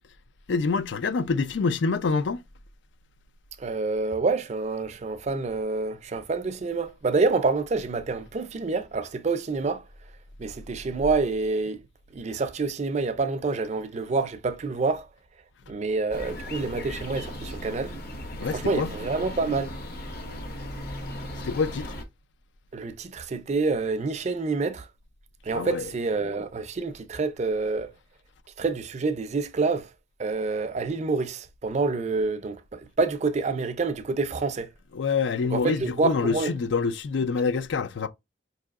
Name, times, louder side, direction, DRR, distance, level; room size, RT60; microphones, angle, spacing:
voice 1, 0.5-2.4 18.4-18.9 21.4-21.9 25.5-25.9 34.9-38.1, left 4 dB, 75° left, 0.4 m, -26 dB
voice 2, 3.6-9.8 10.4-11.8 12.1-15.1 15.7-17.9 18.4-19.7 22.7-24.9 25.4-27.9 28.6-29.9 30.2-34.7 35.5-36.5, right 3 dB, 40° right, 0.4 m, -27 dB
sound 1, 16.1-22.0, equal, 55° left, 0.9 m, -37 dB
4.7 x 2.7 x 2.3 m
head